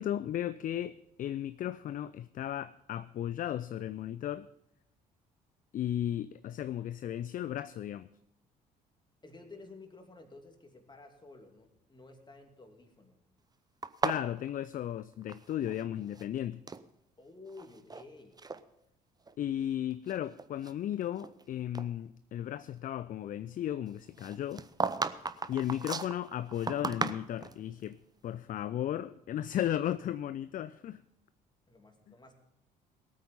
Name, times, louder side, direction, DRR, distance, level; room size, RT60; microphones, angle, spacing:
voice 1, 0.0-4.5 5.7-8.1 14.0-16.6 19.4-24.7 25.5-31.0 32.1-32.2, left 11 dB, 40° left, 16 dB, 0.5 m, -35 dB
voice 2, 9.2-13.2 17.2-18.4 25.8-26.0 31.7-32.3, left 3 dB, 20° left, 5 dB, 2.7 m, -52 dB
sound 1, 13.8-15.8 16.1-16.9 17.5-18.0 18.4-18.6 19.3-19.4 19.9-21.4 21.7-21.9 24.2-27.6, right 4 dB, 20° right, 0.7 m, -36 dB
18.5 x 8.7 x 5.3 m, 0.80 s
figure-of-eight pair, 50°, 21 cm